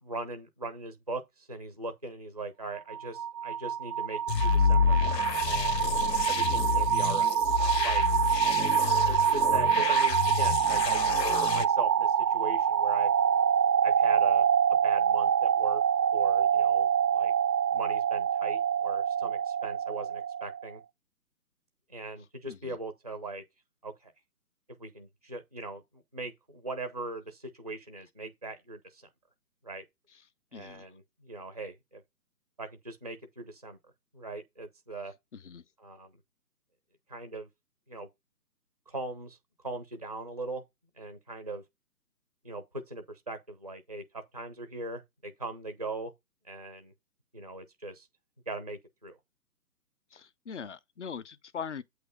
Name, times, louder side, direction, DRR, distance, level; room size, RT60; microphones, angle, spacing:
voice 1, 0.0-5.0 5.4-5.9 6.2-7.4 7.8-8.0 8.4-13.1 13.8-15.8 16.1-17.3 17.7-20.8 21.9-23.4 23.8-24.1 24.8-29.1 29.6-29.8 30.5-32.0 32.6-33.8 34.1-35.1 35.8-36.2 37.1-37.5 37.9-38.1 38.9-39.4 39.6-40.6 41.0-41.6 42.4-46.1 46.4-46.9 47.3-48.1 48.5-49.2, right 2 dB, 25° right, 0.4 m, -40 dB
sound 1, 2.8-20.6, right 8 dB, 85° right, 0.6 m, -26 dB
sound 2, 4.3-11.6, left 7 dB, 85° left, 0.7 m, -29 dB
voice 2, 22.4-22.8 30.5-30.9 35.3-35.6 50.1-51.8, left 6 dB, 50° left, 0.5 m, -41 dB
8.1 x 3.1 x 4.9 m
figure-of-eight pair, 150°, 48 cm